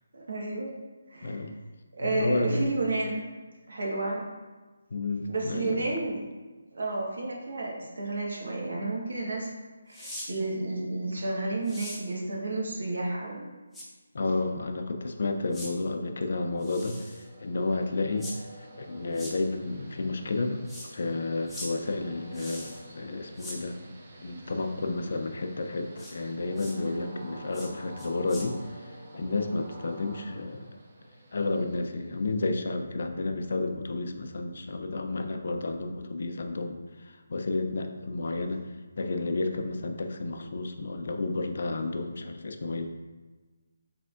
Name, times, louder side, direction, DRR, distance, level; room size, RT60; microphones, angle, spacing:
voice 1, 0.1-0.7 1.1-1.5 2.0-3.2 3.7-4.2 5.3-6.2 6.7-9.5 9.9-13.4 26.9-27.2, right 2 dB, 70° right, -3 dB, 1.3 m, -31 dB
voice 2, 1.2-1.6 2.0-2.7 4.9-5.9 14.1-18.3 18.6-20.6 20.9-23.8 24.2-30.7 31.3-38.6 39.0-42.9, left 3 dB, 60° left, 5 dB, 0.5 m, -31 dB
sound 1, 9.9-10.3 11.6-12.0 13.7-13.9 15.5-15.7 16.6-17.2 18.2-18.4 19.1-19.3 20.7-20.9 21.5-21.7 22.3-22.8 23.4-23.6 26.0-26.1 26.6-26.8 27.5-27.7 28.0-28.5, left 1 dB, ahead, 0.6 m, -41 dB
Train, 16.0-32.7, right 1 dB, 45° right, 0.9 m, -49 dB
4.9 x 3.3 x 2.4 m, 1.3 s
figure-of-eight pair, 160°, 0 cm